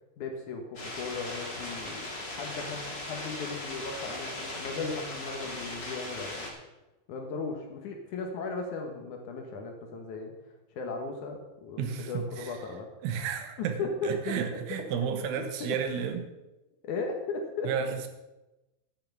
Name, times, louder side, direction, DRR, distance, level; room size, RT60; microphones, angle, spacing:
voice 1, 0.2-2.1 2.4-6.5 7.1-10.3 10.7-12.9 13.6-14.4 15.6-15.8 16.8-17.7, left 4 dB, 80° left, 3 dB, 1.7 m, -36 dB
sound 1, 0.7-6.5, left 2 dB, 40° left, 1.4 m, -38 dB
voice 2, 11.8-12.6 13.0-16.3 17.7-18.1, right 7 dB, 80° right, 7 dB, 3.6 m, -32 dB
11.5 x 8.6 x 5.9 m, 1.0 s
omnidirectional pair, 5.5 m